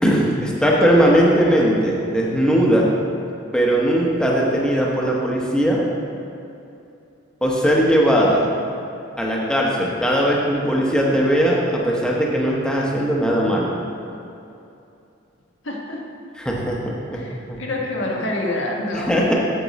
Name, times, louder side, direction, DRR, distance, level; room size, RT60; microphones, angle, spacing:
voice 1, 0.0-2.9 3.5-5.8 7.4-8.5 9.2-13.7 16.4-16.8 17.1-17.2 17.5-17.6 18.9-19.3, equal, 5° left, -3 dB, 0.9 m, -19 dB
voice 2, 15.6-16.0 17.1-19.2, left 1 dB, 80° left, -2 dB, 1.3 m, -27 dB
8.1 x 6.8 x 4.1 m, 2.7 s
head